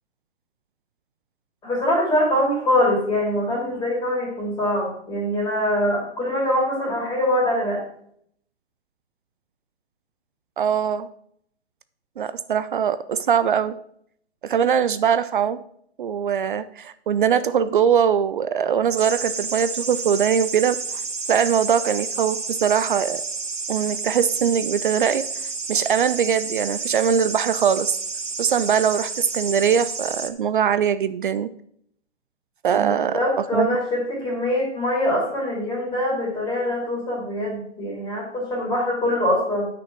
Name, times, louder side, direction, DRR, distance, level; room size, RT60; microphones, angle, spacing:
voice 1, 1.6-7.8 32.7-39.7, left 1 dB, 10° left, -2 dB, 3.0 m, -23 dB
voice 2, 10.6-11.1 12.2-13.8 14.4-15.6 16.0-20.8 21.3-23.2 23.7-28.0 28.4-31.5 32.6-33.8, right 8 dB, 45° right, 14 dB, 0.5 m, -22 dB
sound 1, 19.0-30.3, right 4 dB, 90° right, 1.2 m, -30 dB
9.4 x 6.0 x 6.2 m, 0.68 s
figure-of-eight pair, 130°, 36 cm